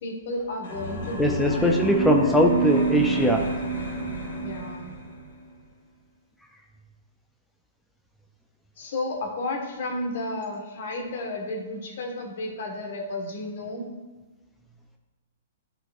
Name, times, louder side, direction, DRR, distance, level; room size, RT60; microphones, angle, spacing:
voice 1, 0.0-1.7 4.4-4.9 8.8-13.9, left 2 dB, 65° left, 1 dB, 1.4 m, -32 dB
sound 1, 0.6-5.3, right 3 dB, 80° left, 1.6 m, -28 dB
voice 2, 1.2-3.5, equal, 5° left, 1 dB, 0.5 m, -21 dB
10.0 x 4.0 x 2.5 m, 1.3 s
hypercardioid pair, 130°, 0 cm